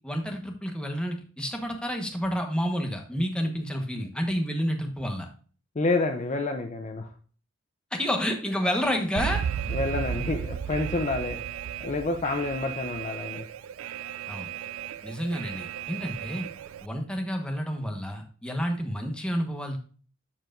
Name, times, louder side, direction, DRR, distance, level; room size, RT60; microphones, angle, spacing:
voice 1, 0.0-5.3 7.9-9.4 14.3-14.5 15.0-16.4 16.8-19.8, equal, 5° left, 2 dB, 1.1 m, -29 dB
voice 2, 5.8-7.1 9.7-11.4 11.8-13.4, left 3 dB, 35° left, 5 dB, 0.6 m, -28 dB
Alarm, 9.2-16.9, right 8 dB, 90° right, 0.4 m, -34 dB
13.0 x 4.7 x 2.5 m, 0.40 s
head